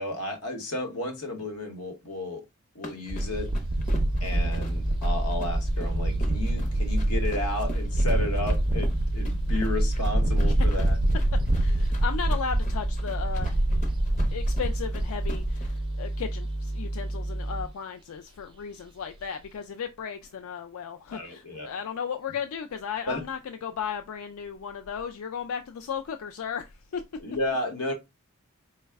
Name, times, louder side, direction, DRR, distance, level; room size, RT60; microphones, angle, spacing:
voice 1, 0.0-2.4 2.7-3.5 4.2-11.0 21.1-21.7 23.1-23.2 27.2-27.9, left 1 dB, 85° left, 1.0 m, -33 dB
sound 1, 2.8-15.8, left 1 dB, 35° left, 0.7 m, -46 dB
sound 2, 3.1-15.8, right 1 dB, 20° right, 0.4 m, -26 dB
sound 3, 3.7-17.7, right 1 dB, 50° left, 1.0 m, -32 dB
voice 2, 11.5-13.9 14.3-27.0, left 7 dB, 70° left, 0.4 m, -35 dB
4.6 x 2.1 x 3.4 m
head